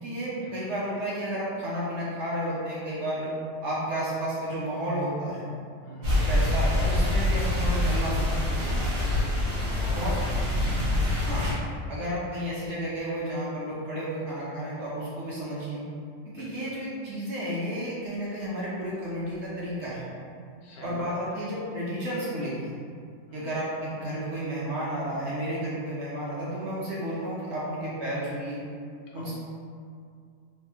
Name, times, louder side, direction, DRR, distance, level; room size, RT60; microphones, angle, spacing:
voice 1, 0.0-3.3 3.6-5.4 6.1-8.3 9.9-10.2 11.2-11.5 11.9-15.8 16.2-20.0 20.8-22.7 23.3-28.6 29.1-29.3, equal, 65° right, -7 dB, 0.8 m, -32 dB
voice 2, 5.8-6.3 8.9-10.6 16.3-16.8 20.6-21.3 23.3-23.5 29.1-29.3, left 1 dB, 80° left, -4 dB, 1.2 m, -45 dB
sound 1, 6.0-11.5, left 1 dB, 85° right, 1.5 m, -25 dB
3.3 x 2.3 x 2.7 m, 2.3 s
omnidirectional pair, 1.6 m